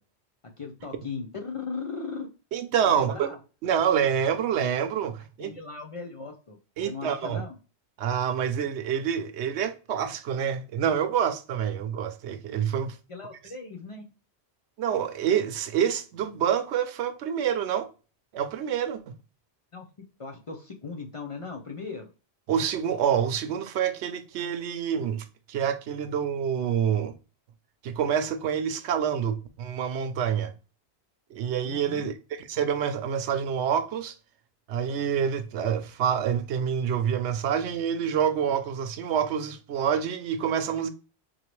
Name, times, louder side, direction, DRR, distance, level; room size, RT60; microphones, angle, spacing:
voice 1, 0.6-2.3 2.9-3.4 5.4-6.6 6.8-7.6 13.1-14.1 19.7-19.9 20.2-22.1 31.6-32.1, left 4 dB, 45° left, 0.5 m, -38 dB
voice 2, 2.5-3.3 3.6-5.5 6.8-7.4 8.0-13.0 14.8-17.9 18.3-19.0 22.5-27.1 27.8-30.5 31.3-34.1 34.7-40.9, right 8 dB, 90° right, 0.9 m, -27 dB
3.8 x 3.1 x 3.0 m
omnidirectional pair, 1.1 m